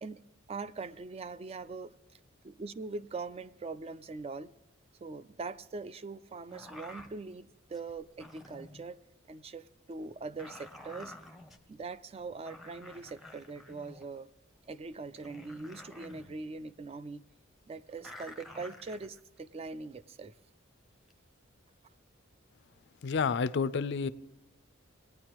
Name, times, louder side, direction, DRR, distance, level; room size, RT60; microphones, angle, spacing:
voice 1, 0.5-2.2 2.4-4.5 5.0-9.0 9.3-11.1 11.7-14.3 14.7-17.2 17.7-20.3, right 3 dB, 30° right, 0.3 m, -42 dB
sound 1, 6.5-7.2 7.7-8.9 9.8-11.6 12.2-12.3 12.4-14.2 14.8-14.9 15.2-16.3 18.0-19.7 20.9-21.2, left 1 dB, ahead, 0.6 m, -50 dB
voice 2, 23.0-24.1, left 5 dB, 55° left, 0.4 m, -29 dB
18.0 x 9.4 x 3.0 m
head